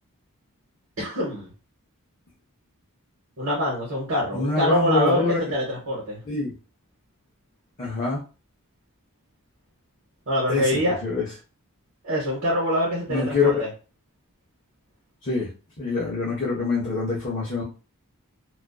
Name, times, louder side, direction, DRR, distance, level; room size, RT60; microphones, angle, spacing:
voice 1, 1.0-1.5 3.4-6.2 10.3-10.9 12.0-13.7, equal, 60° right, -4 dB, 0.9 m, -25 dB
voice 2, 4.3-5.4 6.3-6.5 7.8-8.2 10.5-11.3 13.1-13.6 15.2-15.5 15.8-17.6, left 3 dB, 35° left, -5 dB, 0.6 m, -25 dB
2.4 x 2.3 x 2.2 m, 0.33 s
head